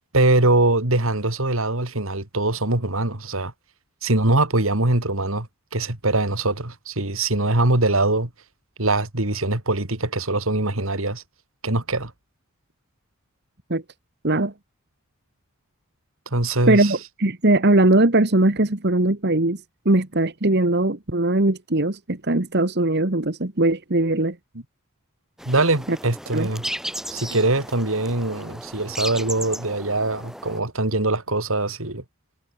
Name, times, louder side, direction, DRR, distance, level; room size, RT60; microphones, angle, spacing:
voice 1, 0.1-3.5 4.0-5.5 5.7-8.3 8.8-11.2 11.6-12.1 16.3-17.0 25.4-26.6 27.1-32.0, right 2 dB, 70° right, 3.1 m, -22 dB
voice 2, 16.7-19.6 19.9-24.4 26.3-26.5, right 2 dB, 50° right, 1.7 m, -20 dB
sound 1, 25.4-30.6, equal, ahead, 7.6 m, -35 dB
head